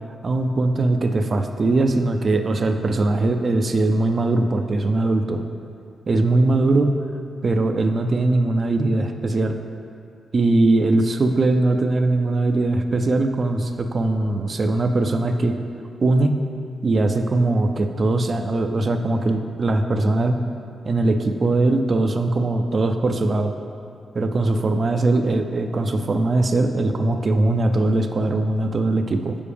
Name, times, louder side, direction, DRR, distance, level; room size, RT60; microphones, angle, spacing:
voice 1, 0.2-5.4 6.1-6.9 7.4-9.6 10.3-15.6 16.0-16.4 16.8-20.4 20.9-23.5 24.1-29.4, right 2 dB, 45° right, 6 dB, 0.4 m, -20 dB
7.0 x 4.7 x 3.4 m, 2.5 s
cardioid pair, 75°, 0 cm